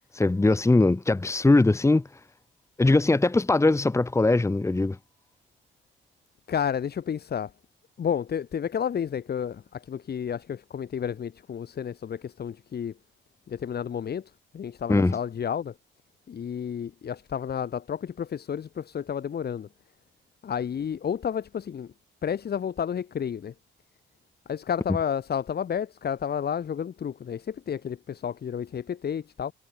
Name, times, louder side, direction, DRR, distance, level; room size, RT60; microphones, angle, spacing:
voice 1, 0.1-2.1 2.8-5.0 14.9-15.2, left 2 dB, 15° left, 1.6 m, -21 dB
voice 2, 6.5-7.5 8.0-12.9 13.5-14.2 14.5-15.7 16.3-19.7 20.4-21.9 22.2-23.5 24.5-29.5, left 8 dB, 55° left, 4.3 m, -31 dB
cardioid pair, 90°, 20 cm